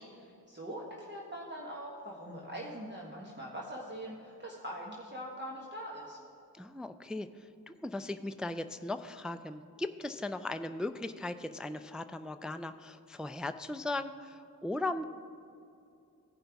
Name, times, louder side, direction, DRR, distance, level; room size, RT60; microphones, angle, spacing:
voice 1, 0.0-6.2, equal, 30° right, -3 dB, 1.2 m, -43 dB
voice 2, 6.6-7.3 7.7-15.0, left 2 dB, ahead, 9 dB, 0.3 m, -38 dB
16.5 x 5.5 x 3.5 m, 2.6 s
cardioid pair, 40°, 37 cm